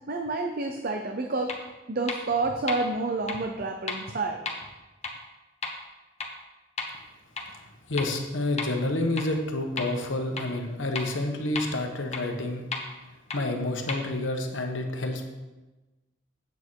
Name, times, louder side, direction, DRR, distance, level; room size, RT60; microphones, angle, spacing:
voice 1, 0.1-1.5 1.9-4.4, right 3 dB, 50° right, 4 dB, 0.7 m, -29 dB
sound 1, 1.5-1.6 2.1-2.2 2.7-2.8 3.3-3.4 3.9-4.0 4.5-4.6 5.0-5.1 5.6-5.7 6.2-6.3 6.8-6.9 7.4-7.5 8.0-8.1 8.6-8.7 9.2-9.3 9.8-9.9 10.4-10.5 11.0-11.1 11.6-11.7 12.1-12.2 12.7-12.8 13.3-13.4 13.9-14.0, left 4 dB, 35° left, 1.1 m, -32 dB
voice 2, 7.9-12.6 13.3-15.3, left 2 dB, 85° left, 4 dB, 1.2 m, -29 dB
8.5 x 8.2 x 4.7 m, 1.1 s
head